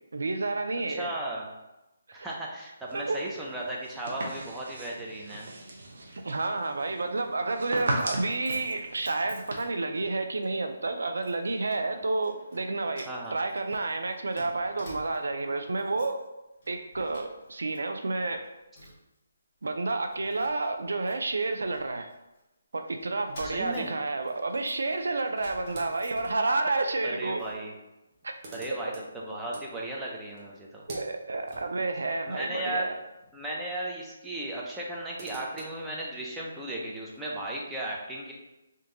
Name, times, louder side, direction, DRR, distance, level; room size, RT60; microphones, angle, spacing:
voice 1, 0.1-1.1 2.1-2.3 2.9-3.2 6.1-16.2 16.7-18.5 19.6-22.1 22.7-27.4 28.2-28.4 30.9-33.0, right 3 dB, 85° right, 6 dB, 0.5 m, -30 dB
voice 2, 0.9-1.5 2.1-5.5 11.9-12.0 13.1-13.4 23.4-23.9 27.0-27.7 28.5-30.8 32.3-32.9 33.3-38.3, right 1 dB, 5° right, -4 dB, 0.5 m, -35 dB
sound 1, 2.9-9.5, right 1 dB, 60° right, 0.8 m, -37 dB
Keys jangling, 7.8-10.1 10.4-10.6 11.2-11.8 12.2-12.6 12.9-15.4 15.7-16.3 16.6-17.8 18.0-19.2 19.6-19.7 20.1-22.4 23.0-26.6 26.9-27.6, left 1 dB, 30° left, 1.4 m, -52 dB
sound 2, 25.7-26.6 27.7-27.8 28.0-33.5 33.8-33.9 34.7-37.2, right 1 dB, 25° right, 0.9 m, -49 dB
3.7 x 2.7 x 3.8 m, 0.96 s
hypercardioid pair, 170°, 0 cm